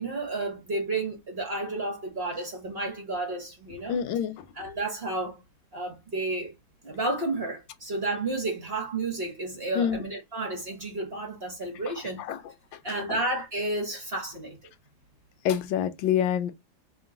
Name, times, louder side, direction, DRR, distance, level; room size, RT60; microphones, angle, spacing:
voice 1, 0.0-4.0 4.6-5.4 5.7-6.5 6.8-12.2 12.8-14.6, right 2 dB, 40° right, 1.1 m, -31 dB
voice 2, 3.9-4.4 9.7-10.0 11.9-12.0 12.2-12.4 12.9-13.2 15.4-16.5, left 9 dB, 80° left, 1.3 m, -27 dB
3.0 x 2.9 x 3.7 m
omnidirectional pair, 2.1 m